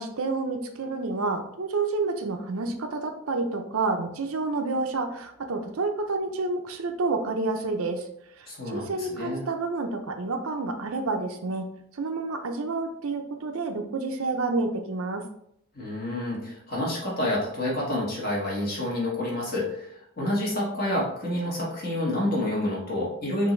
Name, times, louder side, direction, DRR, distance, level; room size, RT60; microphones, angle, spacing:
voice 1, 0.0-8.1 8.4-11.6 11.9-15.2, right 3 dB, 75° right, 6 dB, 0.6 m, -29 dB
voice 2, 8.5-9.5 15.7-23.5, left 1 dB, 45° left, -5 dB, 1.7 m, -28 dB
6.1 x 2.7 x 3.2 m, 0.72 s
head